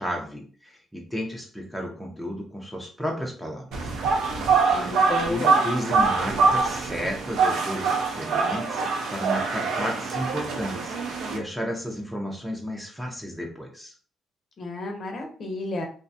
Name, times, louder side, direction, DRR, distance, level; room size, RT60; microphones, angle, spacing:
voice 1, 0.0-3.9 4.7-8.8 9.1-11.0 11.3-13.9, equal, ahead, 0 dB, 0.5 m, -33 dB
sound 1, 3.7-11.4, right 4 dB, 80° right, 0.5 m, -24 dB
voice 2, 4.7-5.6 14.6-15.9, left 2 dB, 40° left, 3 dB, 0.6 m, -32 dB
2.4 x 2.2 x 2.6 m, 0.41 s
cardioid pair, 145°, 0 cm